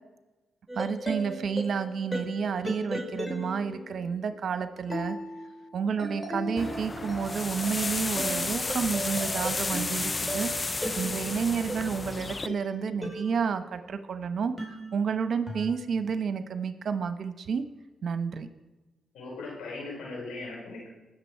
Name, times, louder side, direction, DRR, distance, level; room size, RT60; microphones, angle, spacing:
sound 1, 0.7-14.1 14.6-15.7, right 1 dB, 15° left, 3.8 m, -38 dB
voice 1, 0.7-5.2 5.7-10.5 11.0-14.5 14.9-17.6 18.0-18.5, right 6 dB, 65° right, 10 dB, 1.0 m, -30 dB
sound 2, 6.6-12.5, left 3 dB, 35° left, 0.5 m, -32 dB
voice 2, 19.1-20.9, left 3 dB, 85° left, -3 dB, 5.0 m, -38 dB
20.0 x 7.0 x 4.6 m, 1.1 s
supercardioid pair, 50°, 0 cm